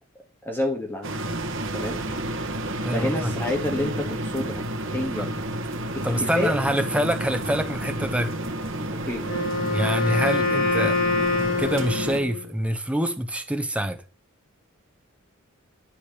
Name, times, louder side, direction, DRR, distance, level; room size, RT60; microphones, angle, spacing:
voice 1, 0.4-1.1 1.7-2.0 2.9-5.3 6.0-6.5 8.9-9.3, left 1 dB, 10° left, 2.0 m, -29 dB
sound 1, 1.0-12.2, right 1 dB, 65° right, 1.7 m, -30 dB
voice 2, 2.8-3.3 5.2-5.3 6.0-8.3 9.7-11.0 11.6-14.0, equal, 5° right, 1.1 m, -26 dB
Wind instrument woodwind instrument, 9.2-12.5, left 3 dB, 65° left, 3.6 m, -25 dB
10.5 x 5.2 x 6.8 m
head